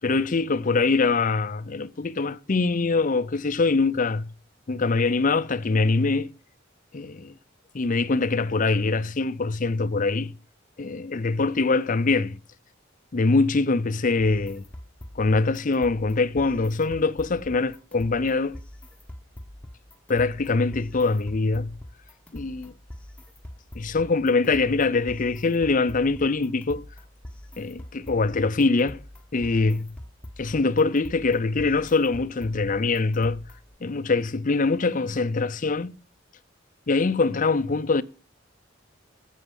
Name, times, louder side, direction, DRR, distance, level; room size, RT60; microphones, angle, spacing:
voice 1, 0.0-4.3 4.7-6.3 6.9-7.3 7.7-10.3 10.8-12.4 13.1-14.6 15.2-18.6 20.1-21.8 22.3-22.7 23.7-26.9 27.6-29.0 29.3-29.9 30.4-33.4 33.8-35.9 36.9-38.0, left 3 dB, 45° left, 0.6 m, -23 dB
sound 1, 14.2-33.8, left 1 dB, 5° left, 1.1 m, -44 dB
13.5 x 7.3 x 5.4 m
head